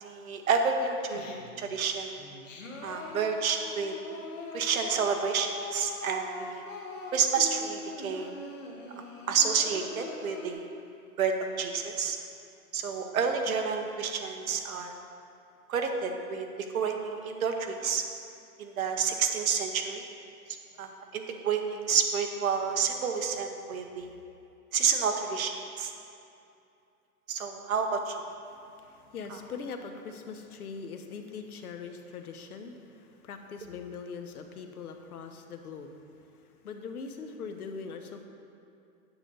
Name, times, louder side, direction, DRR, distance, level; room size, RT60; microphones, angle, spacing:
voice 1, 0.0-2.2 2.8-4.0 4.5-6.6 7.1-8.3 9.0-10.7 11.2-12.2 12.7-15.0 15.7-16.5 16.7-18.0 18.6-20.0 20.8-24.2 24.7-25.9 27.3-28.1 29.3-29.4, right 6 dB, 60° right, 4 dB, 0.9 m, -29 dB
Singing, 1.1-1.7 2.2-10.5, left 3 dB, 55° left, 1.2 m, -42 dB
voice 2, 28.4-38.2, left 5 dB, 70° left, 6 dB, 0.9 m, -42 dB
9.0 x 6.9 x 3.8 m, 2.6 s
hypercardioid pair, 180°, 47 cm